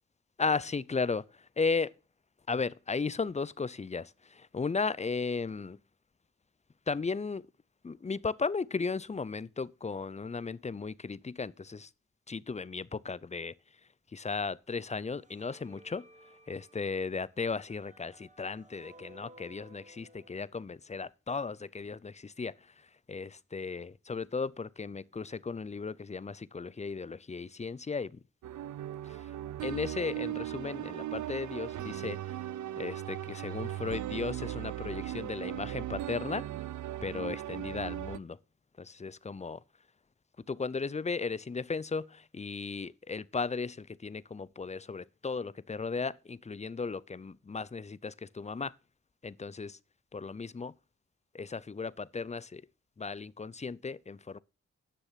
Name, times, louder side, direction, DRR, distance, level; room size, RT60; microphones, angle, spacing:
voice 1, 0.4-1.2 1.6-1.9 2.5-5.8 6.9-7.4 7.8-11.9 12.3-13.5 14.1-16.0 16.5-22.5 23.1-28.2 29.0-29.2 29.6-32.2 32.8-36.5 37.0-38.4 38.8-39.6 40.5-48.7 49.2-49.8 50.1-50.7 51.3-52.6 53.0-54.4, left 4 dB, 20° left, 0.5 m, -35 dB
sound 1, 15.2-20.4, right 1 dB, 25° right, 1.8 m, -57 dB
sound 2, 28.4-38.2, right 12 dB, 70° right, 0.5 m, -38 dB
10.0 x 6.6 x 5.7 m
supercardioid pair, 45°, 31 cm